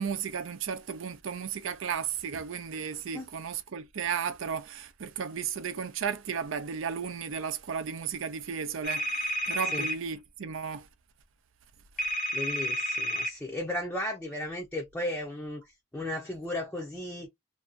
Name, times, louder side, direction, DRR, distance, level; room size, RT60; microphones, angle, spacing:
voice 1, 0.0-10.9, right 7 dB, 75° right, 0.5 m, -34 dB
sound 1, 8.8-10.0 12.0-13.3, equal, 45° left, 0.7 m, -30 dB
voice 2, 12.3-15.6 15.9-17.3, left 1 dB, 5° left, 0.5 m, -35 dB
2.6 x 2.2 x 2.4 m
head